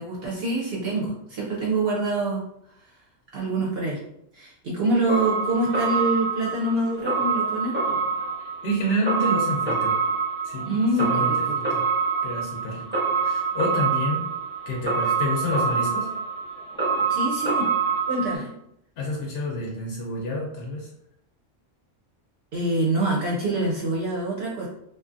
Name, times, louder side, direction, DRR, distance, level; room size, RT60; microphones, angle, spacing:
voice 1, 0.0-2.4 3.3-4.0 4.3-7.7 10.7-11.4 17.1-17.7 18.1-18.5 22.5-24.7, right 2 dB, 60° right, -4 dB, 0.8 m, -25 dB
sound 1, 5.1-18.4, right 5 dB, 10° right, 0.7 m, -26 dB
voice 2, 8.4-10.0 10.4-11.9 12.2-14.3 14.7-16.1 19.0-20.9, equal, 65° left, -2 dB, 0.8 m, -29 dB
2.6 x 2.3 x 2.5 m, 0.75 s
omnidirectional pair, 1.2 m